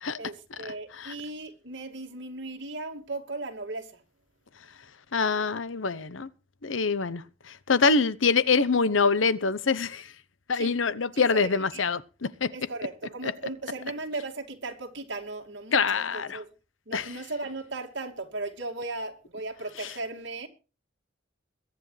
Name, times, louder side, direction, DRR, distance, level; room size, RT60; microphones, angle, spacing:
voice 1, 0.2-4.0 10.5-10.8 11.1-11.8 12.5-16.5 16.9-20.5, right 2 dB, 65° right, 2.5 m, -37 dB
voice 2, 5.1-6.3 6.6-7.2 7.7-10.1 10.5-12.5 13.2-13.3 15.7-16.4 16.9-17.0, left 4 dB, 85° left, 0.9 m, -25 dB
22.0 x 10.5 x 3.3 m
head